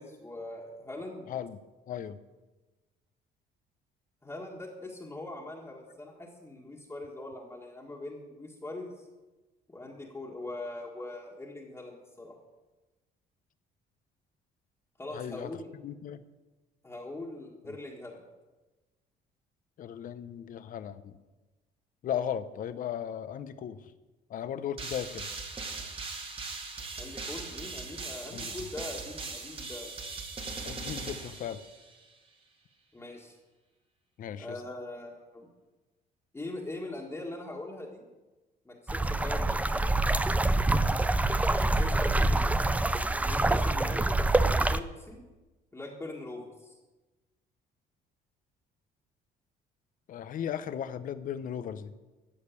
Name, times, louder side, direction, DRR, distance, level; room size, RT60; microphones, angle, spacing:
voice 1, 0.0-1.3 4.2-8.9 9.7-12.3 15.0-15.7 16.8-18.2 27.0-29.9 32.9-33.4 34.4-35.5 36.3-38.1 38.7-39.8 41.5-42.5 43.2-44.2 44.6-45.2 45.7-46.8, left 2 dB, 15° left, -2 dB, 1.8 m, -42 dB
voice 2, 1.3-1.6 1.9-2.2 15.1-15.5 15.8-16.2 19.8-21.1 22.0-23.8 24.3-25.3 28.3-28.5 30.6-31.6 34.2-34.5 39.4-39.5 50.1-51.9, left 9 dB, 55° left, 13 dB, 0.7 m, -36 dB
sound 1, 24.8-32.0, right 3 dB, 30° right, 1.7 m, -39 dB
sound 2, 38.9-44.8, right 2 dB, 10° right, 0.4 m, -26 dB
14.0 x 5.1 x 8.3 m, 1.2 s
cardioid pair, 110°, 17 cm